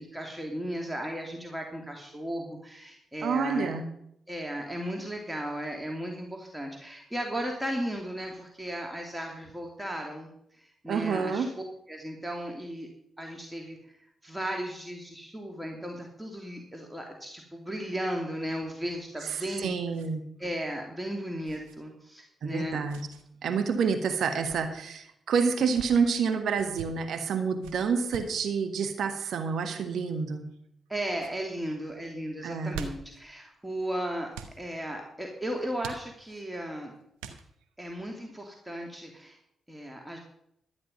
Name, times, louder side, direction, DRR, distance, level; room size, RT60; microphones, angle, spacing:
voice 1, 0.0-3.7 4.3-11.5 11.9-12.9 13.2-13.8 14.2-19.7 20.4-22.8 30.9-34.3 34.6-36.9 37.8-39.4 39.7-40.2, right 1 dB, 10° right, 1 dB, 2.6 m, -35 dB
voice 2, 3.2-3.9 10.9-11.5 19.2-20.3 22.4-23.0 23.4-30.5 32.4-32.8, right 5 dB, 70° right, 8 dB, 1.5 m, -28 dB
sound 1, 18.9-20.1 20.4-20.5 21.4-21.8 22.9-23.2 24.2-24.6 25.5-25.9 26.5-26.9 27.6-28.4 29.6-29.9 30.5-30.9 31.1-31.4 32.4-33.2 34.3-34.6 35.8-36.4 37.2-37.7, right 6 dB, 85° right, 1.1 m, -44 dB
13.0 x 9.7 x 5.4 m, 0.73 s
hypercardioid pair, 40°, 0 cm